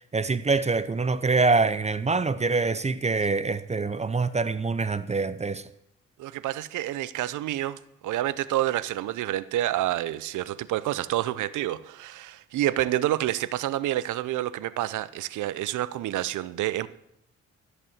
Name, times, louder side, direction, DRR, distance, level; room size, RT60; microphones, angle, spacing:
voice 1, 0.0-5.7, right 3 dB, 20° right, 0.6 m, -25 dB
voice 2, 6.2-16.9, right 14 dB, 80° right, 0.7 m, -28 dB
13.5 x 8.3 x 7.2 m
cardioid pair, 90°, 30 cm